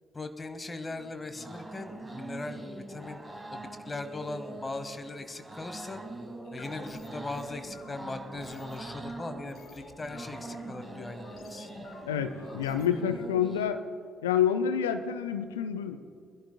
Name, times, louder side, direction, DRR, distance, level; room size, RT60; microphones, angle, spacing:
voice 1, 0.1-3.2 3.5-6.0 6.5-11.7, left 2 dB, 25° left, 9 dB, 1.0 m, -39 dB
sound 1, 0.9-13.7, right 2 dB, 15° right, 1.9 m, -44 dB
sound 2, 6.4-13.3, left 4 dB, 55° left, 1.7 m, -50 dB
voice 2, 12.0-13.8 14.2-16.0, left 8 dB, 80° left, 10 dB, 0.5 m, -28 dB
27.0 x 11.5 x 2.2 m, 2.3 s
figure-of-eight pair, 45°, 0 cm